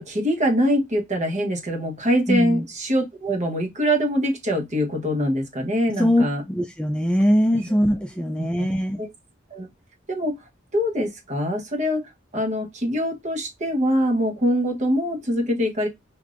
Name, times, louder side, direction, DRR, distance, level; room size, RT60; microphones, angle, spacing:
voice 1, 0.0-6.4 9.0-9.1 9.5-9.7 10.1-10.4 10.7-15.9, equal, 40° right, 1.0 m, -23 dB
voice 2, 2.3-2.6 6.0-9.0, equal, 5° left, 0.3 m, -21 dB
4.8 x 2.7 x 2.5 m
head